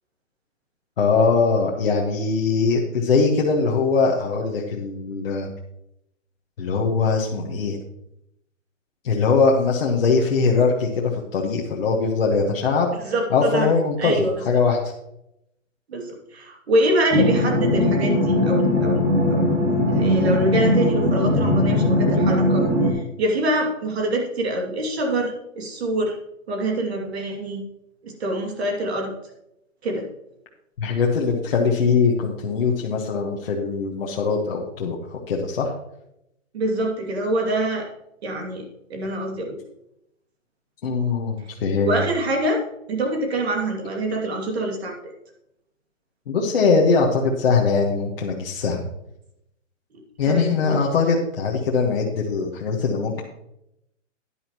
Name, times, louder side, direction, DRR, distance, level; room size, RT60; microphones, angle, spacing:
voice 1, 1.0-5.5 6.6-7.8 9.0-12.9 13.3-14.8 30.8-35.7 40.8-42.0 46.3-48.9 50.2-53.2, left 4 dB, 50° left, -2 dB, 1.4 m, -21 dB
voice 2, 13.0-13.7 14.0-14.3 15.9-19.0 19.3-19.5 19.9-26.1 26.5-27.6 28.0-29.1 29.8-30.1 36.5-37.9 38.2-38.6 38.9-39.6 41.8-42.6 42.9-45.1 50.2-50.8, right 1 dB, 55° right, 1 dB, 2.6 m, -25 dB
sound 1, 17.1-22.9, left 1 dB, 30° right, 2.3 m, -20 dB
11.5 x 10.5 x 3.0 m, 0.81 s
hypercardioid pair, 175°, 38 cm